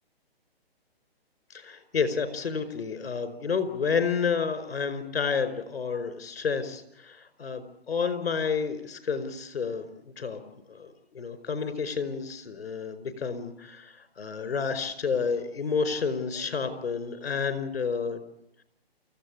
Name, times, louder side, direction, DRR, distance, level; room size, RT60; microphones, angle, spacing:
voice 1, 1.5-10.4 10.7-18.2, left 5 dB, 70° left, 12 dB, 5.0 m, -30 dB
29.0 x 15.5 x 8.7 m, 0.79 s
hypercardioid pair, 140°, 31 cm